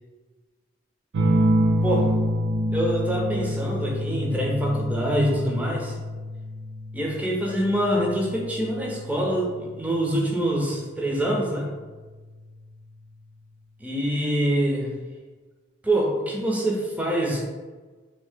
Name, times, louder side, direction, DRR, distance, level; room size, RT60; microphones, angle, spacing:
sound 1, 1.1-10.2 11.7-12.2, equal, 85° right, 0.5 m, -27 dB
voice 1, 2.7-5.9 6.9-11.7 13.8-15.0 15.8-17.4, right 1 dB, 10° right, -1 dB, 0.4 m, -25 dB
2.7 x 2.7 x 3.4 m, 1.4 s
head